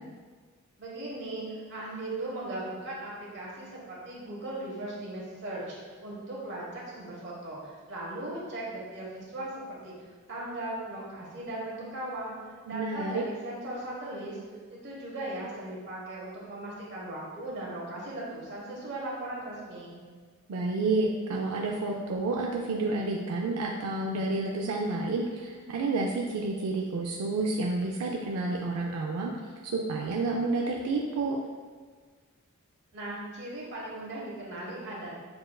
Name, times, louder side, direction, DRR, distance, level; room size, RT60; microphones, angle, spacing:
voice 1, 0.8-1.4 1.7-5.7 6.0-9.9 10.3-12.3 12.7-14.4 14.7-20.0 32.9-35.1, right 1 dB, 55° right, -5 dB, 1.1 m, -38 dB
voice 2, 12.7-13.2 20.5-29.3 29.6-31.4, right 3 dB, 90° right, 0 dB, 0.4 m, -30 dB
6.5 x 2.4 x 2.2 m, 1.5 s
head